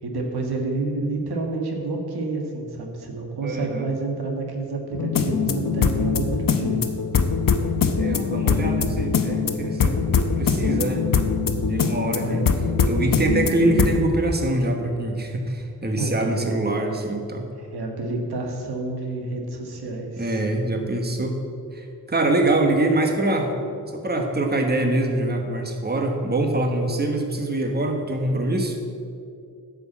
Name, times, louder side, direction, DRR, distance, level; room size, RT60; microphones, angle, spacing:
voice 1, 0.0-6.8 12.2-12.4 16.0-16.5 17.6-20.4, right 3 dB, 85° right, 1 dB, 1.7 m, -29 dB
voice 2, 3.4-3.9 8.0-10.0 10.4-11.0 11.7-12.5 12.9-17.5 20.2-21.4 21.7-23.5 23.9-28.8, right 2 dB, 25° right, 3 dB, 1.4 m, -24 dB
sound 1, 4.9-14.1, left 5 dB, 60° left, 0.9 m, -22 dB
10.5 x 6.1 x 7.4 m, 2.5 s
cardioid pair, 70°, 38 cm